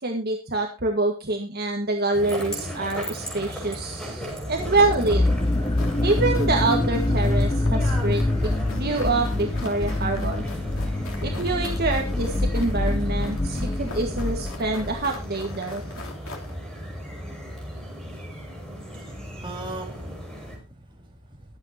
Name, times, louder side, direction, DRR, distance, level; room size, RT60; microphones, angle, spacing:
voice 1, 0.0-5.2 6.0-10.4 11.2-15.8, right 2 dB, 45° right, 2 dB, 1.6 m, -26 dB
sound 1, 2.1-20.6, equal, 5° left, 6.1 m, -36 dB
sound 2, 4.4-15.1, left 2 dB, 20° left, 0.6 m, -25 dB
sound 3, 5.6-16.6, left 3 dB, 70° left, 3.2 m, -43 dB
voice 2, 18.9-21.6, right 2 dB, 20° right, 0 dB, 3.9 m, -41 dB
22.5 x 8.1 x 2.8 m, 0.30 s
head